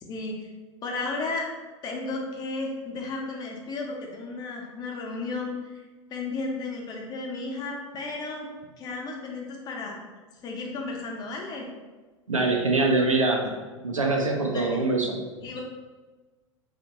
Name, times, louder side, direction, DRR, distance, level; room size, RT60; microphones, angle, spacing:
voice 1, 0.1-0.5 0.8-1.5 1.8-5.8 6.1-8.5 8.8-10.0 10.4-11.7 14.5-14.9 15.4-15.6, left 3 dB, 25° left, 0 dB, 0.5 m, -33 dB
voice 2, 12.3-13.5 13.8-15.2, right 2 dB, 90° right, 1 dB, 0.4 m, -24 dB
2.8 x 2.1 x 2.7 m, 1.3 s
figure-of-eight pair, 90°, 17 cm